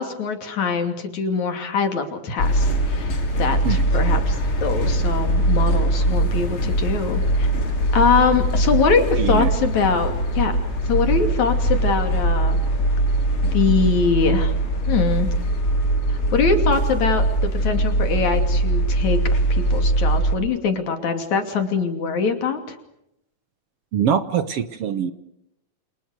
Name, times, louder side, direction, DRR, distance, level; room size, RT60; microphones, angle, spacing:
voice 1, 0.0-3.1 3.4-7.5 7.9-10.6 10.9-12.6 13.5-14.5 14.9-15.3 16.1-19.2 19.5-22.8, left 5 dB, 70° left, 6 dB, 4.1 m, -23 dB
sound 1, 2.4-20.3, right 1 dB, 45° left, 3.7 m, -21 dB
voice 2, 9.2-9.5 23.9-25.1, right 8 dB, 60° right, 12 dB, 1.9 m, -23 dB
29.0 x 27.5 x 6.6 m, 0.80 s
omnidirectional pair, 3.4 m